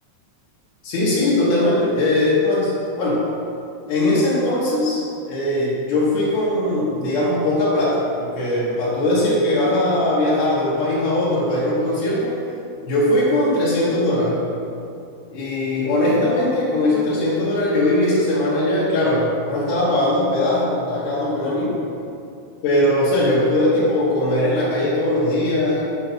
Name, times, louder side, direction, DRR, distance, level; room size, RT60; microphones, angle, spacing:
voice 1, 0.8-2.7 3.0-3.2 3.9-12.4 12.8-14.4 15.3-21.8 22.6-25.8, left 1 dB, 70° left, -9 dB, 3.2 m, -20 dB
8.5 x 4.6 x 5.9 m, 2.6 s
omnidirectional pair, 4.9 m